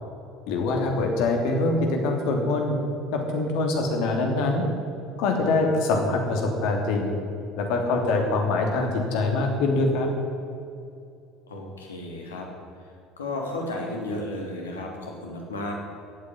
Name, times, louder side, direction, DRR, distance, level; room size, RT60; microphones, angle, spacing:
voice 1, 0.5-2.8 3.1-4.6 5.2-7.1 7.6-10.1, left 2 dB, 65° left, 2 dB, 3.1 m, -24 dB
voice 2, 11.5-12.5 13.2-15.7, left 2 dB, 85° left, 1 dB, 2.8 m, -33 dB
14.5 x 8.5 x 9.9 m, 2.5 s
hypercardioid pair, 65°, 0 cm